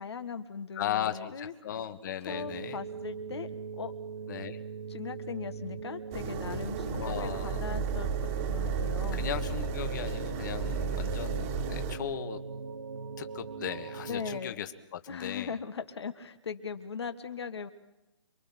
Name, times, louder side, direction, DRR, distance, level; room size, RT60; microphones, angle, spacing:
voice 1, 0.0-1.5 2.3-3.5 3.7-3.9 4.9-8.1 8.5-9.3 14.1-14.6 15.1-17.7, left 6 dB, 60° left, 9 dB, 1.6 m, -39 dB
voice 2, 0.7-2.8 4.3-4.6 6.9-7.6 9.1-12.4 13.2-15.5, left 10 dB, 40° left, 8 dB, 1.7 m, -37 dB
sound 1, 2.3-14.4, right 5 dB, 55° right, 1.3 m, -41 dB
sound 2, 6.1-12.0, right 5 dB, 25° right, 2.1 m, -33 dB
sound 3, 6.8-8.4, right 2 dB, 80° right, 4.7 m, -45 dB
27.5 x 22.5 x 6.0 m, 1.0 s
figure-of-eight pair, 145°, 15 cm